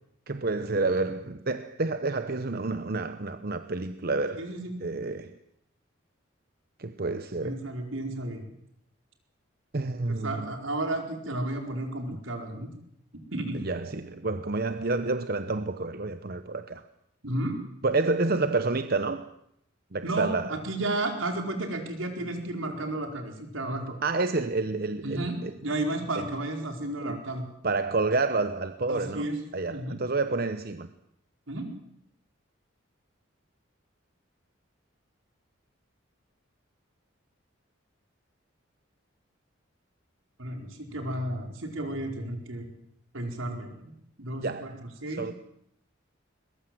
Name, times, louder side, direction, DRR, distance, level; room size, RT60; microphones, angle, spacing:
voice 1, 0.3-4.5 4.8-5.3 6.8-7.6 9.7-10.5 13.5-16.8 17.8-19.3 19.9-20.6 24.0-25.5 26.2-26.3 27.0-27.2 27.6-30.9 44.4-44.8 45.2-45.3, right 3 dB, 50° right, 0.9 m, -29 dB
voice 2, 4.4-4.7 7.4-8.4 10.1-12.7 13.3-13.6 17.2-17.6 20.0-24.0 25.0-27.5 28.9-29.3 29.7-30.0 31.5-31.7 40.4-42.7 43.1-43.9 44.2-44.7 45.0-45.3, right 1 dB, 80° right, 4.7 m, -32 dB
22.0 x 21.0 x 7.8 m
head